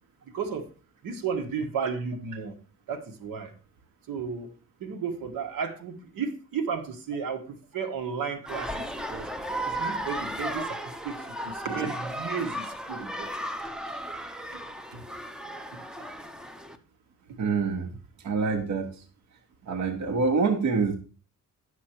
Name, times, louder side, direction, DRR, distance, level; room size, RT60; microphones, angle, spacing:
voice 1, 0.3-0.7 1.0-2.5 2.9-3.5 4.1-4.5 4.8-9.3 9.6-13.3 14.5-14.6 14.9-15.0, right 6 dB, 80° right, 4 dB, 1.4 m, -33 dB
sound 1, 8.5-16.8, right 1 dB, ahead, 0.5 m, -35 dB
voice 2, 17.4-17.9 18.2-18.9 19.7-21.0, right 4 dB, 55° right, 3 dB, 1.1 m, -26 dB
9.5 x 6.3 x 4.4 m, 0.37 s
wide cardioid pair, 150°, 34 cm